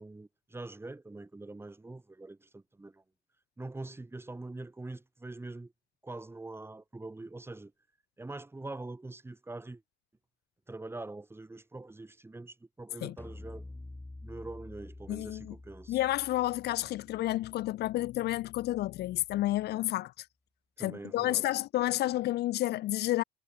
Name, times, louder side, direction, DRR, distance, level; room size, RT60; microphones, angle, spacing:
voice 1, 0.0-3.0 3.6-5.7 6.0-7.7 8.2-9.8 10.7-13.7 14.2-16.0 20.8-21.5, right 2 dB, 15° right, 2.1 m, -44 dB
sound 1, 13.2-18.6, left 2 dB, 10° left, 4.7 m, -49 dB
voice 2, 15.1-15.5 15.9-20.1 20.8-23.2, left 15 dB, 65° left, 1.7 m, -30 dB
supercardioid pair, 75°, 18 cm